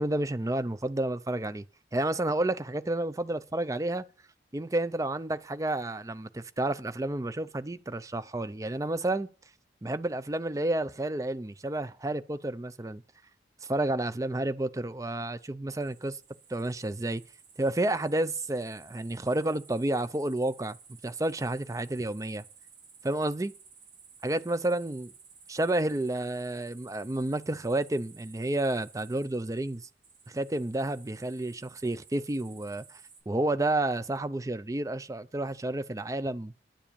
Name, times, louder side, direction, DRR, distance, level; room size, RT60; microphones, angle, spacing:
voice 1, 0.0-1.7 1.9-4.0 4.5-9.3 9.8-13.0 13.6-16.2 16.5-17.2 17.6-20.8 21.0-22.4 23.0-23.5 24.2-25.1 25.5-29.9 30.3-33.0 33.3-36.5, right 1 dB, 20° right, 0.5 m, -30 dB
sound 1, 15.8-33.2, right 5 dB, 70° right, 6.2 m, -55 dB
10.5 x 7.4 x 6.9 m
head